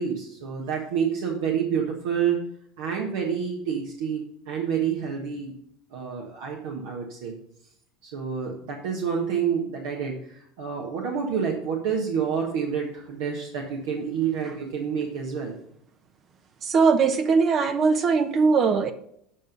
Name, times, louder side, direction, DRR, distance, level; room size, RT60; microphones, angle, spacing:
voice 1, 0.0-2.4 2.8-5.6 5.9-7.3 8.0-15.6, right 7 dB, 70° right, -1 dB, 1.4 m, -28 dB
voice 2, 16.6-18.9, right 5 dB, 40° right, 8 dB, 0.8 m, -20 dB
8.5 x 5.3 x 5.3 m, 0.71 s
hypercardioid pair, 85°, 0 cm